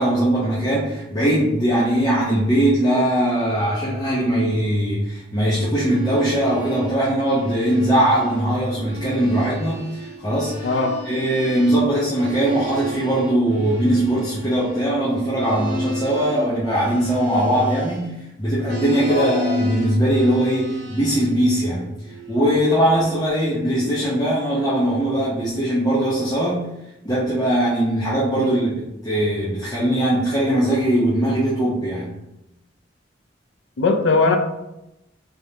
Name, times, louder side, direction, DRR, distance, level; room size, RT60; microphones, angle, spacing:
voice 1, 0.0-10.8 11.0-21.9 22.3-26.7 27.0-32.1, right 1 dB, 20° left, -8 dB, 0.8 m, -20 dB
sound 1, 5.7-8.5 8.7-18.2 18.6-21.4 22.0-23.3, equal, 70° right, 1.1 m, -32 dB
voice 2, 10.6-11.0 19.1-19.3 28.4-28.5 33.8-34.4, left 3 dB, 75° left, 5 dB, 0.5 m, -19 dB
3.6 x 3.5 x 2.7 m, 0.89 s
head